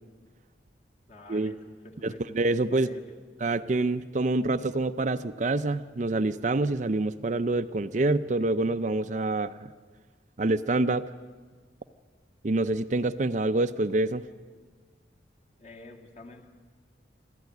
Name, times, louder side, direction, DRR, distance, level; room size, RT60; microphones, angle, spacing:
voice 1, 1.1-2.2 2.7-3.2 13.0-13.1 15.6-16.5, left 1 dB, 40° left, 1 dB, 2.3 m, -48 dB
voice 2, 2.0-2.9 3.4-9.7 10.4-11.0 12.4-14.2, right 2 dB, 40° right, 11 dB, 0.5 m, -26 dB
27.5 x 11.5 x 9.4 m, 1.5 s
head